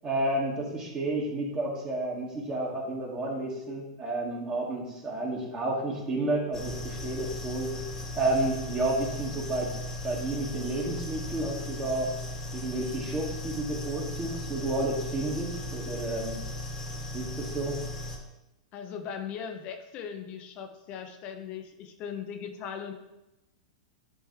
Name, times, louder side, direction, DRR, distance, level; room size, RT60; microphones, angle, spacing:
voice 1, 0.0-7.8 8.1-9.8 10.0-12.1 12.5-16.4 17.1-17.8, right 2 dB, 25° right, -3 dB, 1.8 m, -31 dB
sound 1, 6.5-18.2, left 1 dB, 15° left, 1.3 m, -37 dB
voice 2, 18.7-22.9, left 7 dB, 40° left, 6 dB, 0.7 m, -39 dB
9.7 x 3.3 x 3.2 m, 0.94 s
hypercardioid pair, 120°, 3 cm